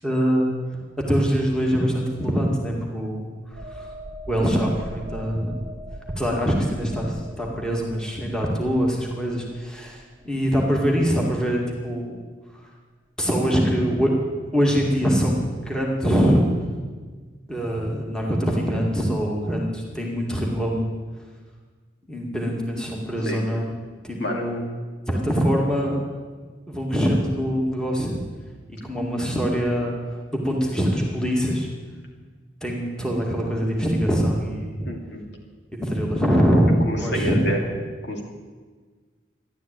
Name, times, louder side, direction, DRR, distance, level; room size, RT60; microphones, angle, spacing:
voice 1, 0.0-0.5 1.1-3.9 4.3-5.6 6.2-12.2 13.2-14.1 14.5-16.5 17.5-20.9 22.1-23.7 24.0-24.6 25.1-26.0 26.7-28.2 28.7-29.9 30.4-31.7 32.6-34.7 35.8-37.4, equal, 5° left, -2 dB, 2.2 m, -23 dB
sound 1, 3.5-11.0 11.3-11.5, right 1 dB, 30° right, 1.5 m, -41 dB
voice 2, 34.8-35.2 36.8-37.6 38.0-38.2, right 1 dB, 60° left, 0 dB, 2.7 m, -28 dB
14.0 x 11.5 x 9.0 m, 1.4 s
head